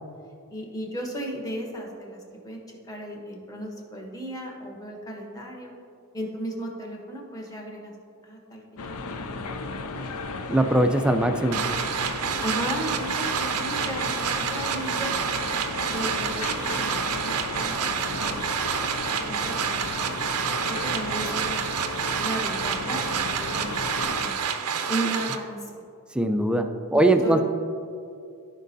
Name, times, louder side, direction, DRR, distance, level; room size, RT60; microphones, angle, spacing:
voice 1, 0.5-5.7 6.1-7.9 8.2-8.6 9.0-10.3 12.4-15.1 15.9-18.5 18.8-20.1 20.7-21.6 22.2-23.8 24.1-24.4 24.9-25.8 26.9-27.4, right 1 dB, 15° left, 0 dB, 1.2 m, -35 dB
sound 1, 8.8-24.3, left 3 dB, 70° left, 0.5 m, -34 dB
voice 2, 10.5-11.6 26.1-27.4, right 1 dB, 5° right, 5 dB, 0.4 m, -21 dB
sound 2, 11.5-25.4, right 7 dB, 85° right, 0.6 m, -28 dB
15.0 x 5.2 x 2.7 m, 2.6 s
head